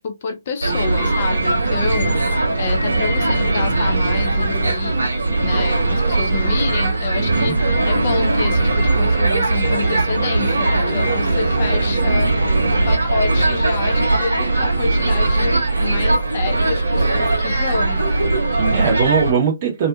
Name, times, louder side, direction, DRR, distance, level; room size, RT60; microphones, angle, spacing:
voice 1, 0.0-2.3 2.6-5.0 5.4-18.3, left 4 dB, 40° left, 0.6 m, -28 dB
sound 1, 0.6-19.3, right 2 dB, 75° right, 0.9 m, -19 dB
voice 2, 1.8-2.2 7.1-7.5 18.5-19.9, right 6 dB, 35° right, 0.9 m, -21 dB
2.6 x 2.5 x 2.3 m
figure-of-eight pair, 135°, 0 cm